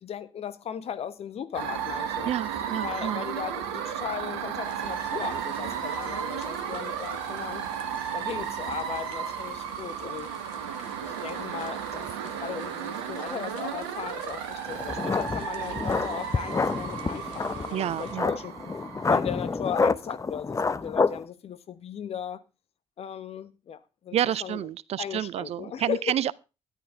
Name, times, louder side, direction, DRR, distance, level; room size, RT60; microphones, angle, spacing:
voice 1, 0.0-2.3 2.8-7.6 8.1-10.3 11.0-18.5 19.1-22.4 23.0-24.6 25.0-26.2, left 8 dB, 50° left, 1.2 m, -37 dB
sound 1, 1.5-19.5, right 8 dB, 75° right, 1.2 m, -34 dB
voice 2, 2.2-3.3 17.7-18.3 24.1-26.3, right 11 dB, 50° right, 0.6 m, -29 dB
sound 2, 4.6-18.1, left 10 dB, 70° left, 1.3 m, -50 dB
sound 3, 14.7-21.2, left 4 dB, 25° left, 0.8 m, -28 dB
13.0 x 11.0 x 3.6 m
figure-of-eight pair, 40°, 14 cm